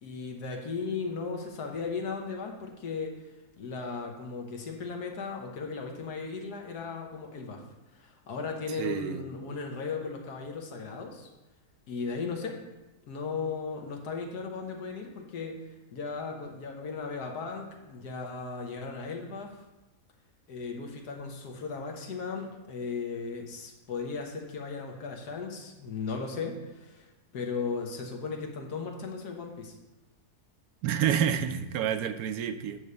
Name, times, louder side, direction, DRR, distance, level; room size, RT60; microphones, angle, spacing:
voice 1, 0.0-3.3 3.6-7.6 7.9-11.3 11.9-12.6 13.1-15.5 15.9-19.6 20.5-29.8, left 4 dB, 80° left, 2 dB, 1.6 m, -36 dB
voice 2, 8.8-9.2 30.8-32.8, right 8 dB, 75° right, 9 dB, 1.0 m, -28 dB
9.3 x 3.3 x 6.7 m, 1.0 s
omnidirectional pair, 1.7 m